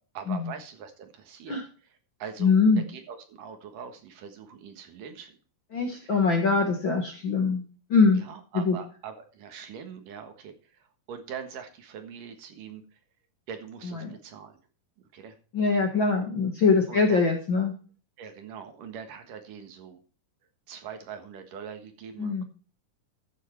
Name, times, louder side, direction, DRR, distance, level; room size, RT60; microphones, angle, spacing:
voice 1, 0.1-1.6 2.2-2.5 2.9-5.3 6.0-6.2 8.2-10.5 11.1-12.8 13.5-14.6 15.1-15.3 16.9-17.2 18.2-20.0 20.7-22.4, right 7 dB, 70° right, 6 dB, 3.0 m, -42 dB
voice 2, 2.4-2.8 5.7-7.6 7.9-8.2 8.5-8.8 13.8-14.2 15.5-17.7 22.2-22.4, left 4 dB, 45° left, 3 dB, 1.8 m, -23 dB
14.0 x 7.5 x 4.5 m, 0.37 s
omnidirectional pair, 4.2 m